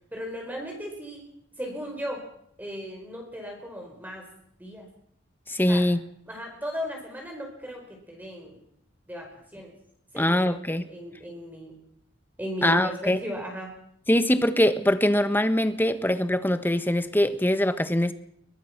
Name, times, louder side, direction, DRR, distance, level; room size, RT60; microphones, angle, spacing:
voice 1, 0.1-1.2 1.6-2.2 2.6-4.3 4.6-4.9 5.7-5.9 6.3-8.6 9.1-9.7 10.1-11.7 12.4-13.7, equal, 10° right, 4.7 m, -36 dB
voice 2, 5.5-6.0 10.2-10.9 12.6-13.2 14.1-18.1, left 1 dB, 10° left, 1.2 m, -23 dB
22.5 x 19.5 x 6.1 m
head